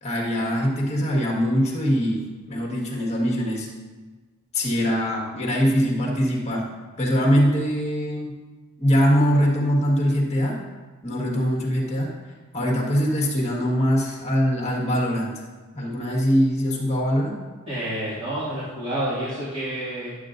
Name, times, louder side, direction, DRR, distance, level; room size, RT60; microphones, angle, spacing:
voice 1, 0.0-3.7 4.5-6.7 7.0-8.4 8.8-10.6 11.0-12.1 12.5-15.4 15.7-17.4, equal, 30° left, -2 dB, 1.6 m, -22 dB
voice 2, 17.7-20.2, right 1 dB, 25° right, -12 dB, 2.2 m, -29 dB
11.0 x 7.9 x 2.6 m, 1.3 s
head